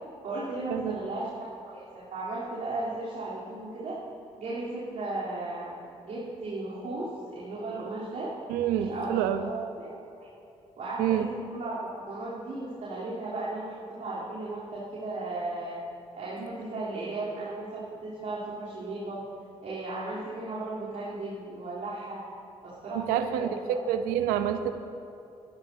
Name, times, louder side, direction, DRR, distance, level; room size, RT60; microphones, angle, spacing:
voice 1, 0.2-4.0 4.4-5.7 6.0-8.3 8.8-9.1 9.4-10.3 10.8-15.8 16.1-19.2 19.6-22.2 22.6-23.8, right 2 dB, 60° right, -10 dB, 3.4 m, -36 dB
voice 2, 8.5-9.4 11.0-11.3 16.4-16.5 22.9-24.7, right 10 dB, 85° right, 9 dB, 0.7 m, -27 dB
22.5 x 11.0 x 2.8 m, 2.8 s
hypercardioid pair, 45°, 15 cm